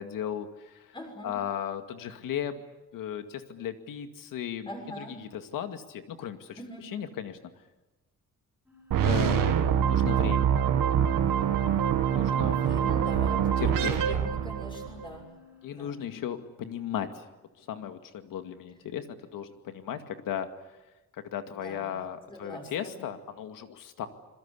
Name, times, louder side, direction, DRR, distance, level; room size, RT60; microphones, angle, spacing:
voice 1, 0.0-0.9 1.2-2.6 2.9-7.4 9.0-9.6 9.8-10.5 12.1-12.6 13.6-14.2 15.6-17.2 17.6-20.5 21.3-24.1, left 9 dB, 80° left, 8 dB, 2.2 m, -36 dB
voice 2, 0.9-1.4 4.7-5.2 6.6-7.0 12.3-15.3 15.7-15.9 21.5-22.0 22.3-23.0, equal, 15° left, 2 dB, 6.6 m, -43 dB
sound 1, 8.7-16.3, left 6 dB, 5° right, 6.8 m, -53 dB
sound 2, 8.9-15.1, right 8 dB, 80° right, 2.1 m, -25 dB
26.5 x 22.5 x 8.5 m, 1.1 s
cardioid pair, 160°, 33 cm